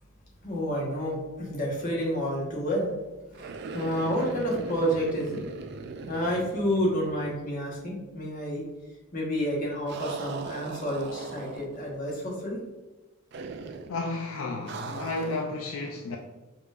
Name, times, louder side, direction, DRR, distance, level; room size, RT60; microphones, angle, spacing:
voice 1, 0.4-2.9 3.3-5.4 6.1-8.6 9.1-12.6, equal, 40° left, 1.2 m, -29 dB
sound 1, 3.3-7.5 7.7-7.8 9.9-11.9 13.3-14.0 14.7-15.5, right 4 dB, 50° right, 0.3 m, -39 dB
voice 2, 13.9-16.2, left 2 dB, 75° left, 0.4 m, -32 dB
4.9 x 3.3 x 2.4 m
head